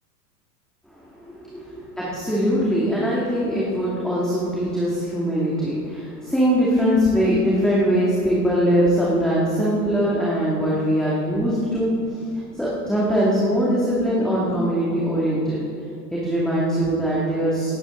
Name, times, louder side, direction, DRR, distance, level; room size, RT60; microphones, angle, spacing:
voice 1, 0.9-12.2 12.6-15.6 16.1-17.8, equal, ahead, -7 dB, 2.3 m, -22 dB
19.0 x 9.1 x 3.9 m, 2.5 s
hypercardioid pair, 100°, 50 cm